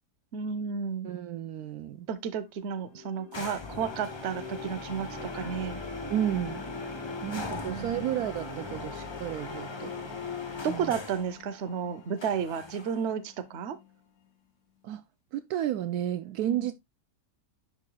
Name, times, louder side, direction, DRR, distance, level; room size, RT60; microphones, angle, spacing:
voice 1, 0.3-1.1 2.1-5.8 7.7-8.1 10.6-13.8 16.5-16.7, right 7 dB, 55° right, 0.9 m, -32 dB
voice 2, 1.0-2.1 6.1-6.6 7.2-9.9 10.7-10.9 14.8-15.0 15.3-16.7, right 11 dB, 75° right, 1.0 m, -32 dB
sound 1, 1.6-1.7 2.1-14.2, left 2 dB, 80° left, 2.4 m, -46 dB
sound 2, 3.3-11.3 12.2-13.1, left 4 dB, 30° left, 0.5 m, -39 dB
10.5 x 5.1 x 2.2 m
omnidirectional pair, 1.8 m